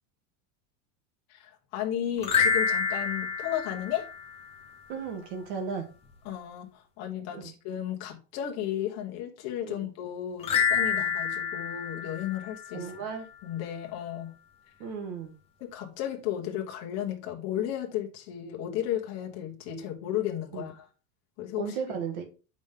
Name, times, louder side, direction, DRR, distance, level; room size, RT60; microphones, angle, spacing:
voice 1, 1.3-4.1 6.2-12.9 13.4-14.3 15.6-20.9 21.4-21.8, left 11 dB, 30° left, 1.3 m, -34 dB
sound 1, 2.2-4.7 10.4-13.0, left 6 dB, 15° left, 0.6 m, -28 dB
voice 2, 4.9-5.9 7.3-7.4 9.6-9.8 12.7-13.3 14.8-15.3 20.5-20.7 21.6-22.2, right 6 dB, 45° right, 1.8 m, -35 dB
7.1 x 5.3 x 3.7 m
supercardioid pair, 170°, 48 cm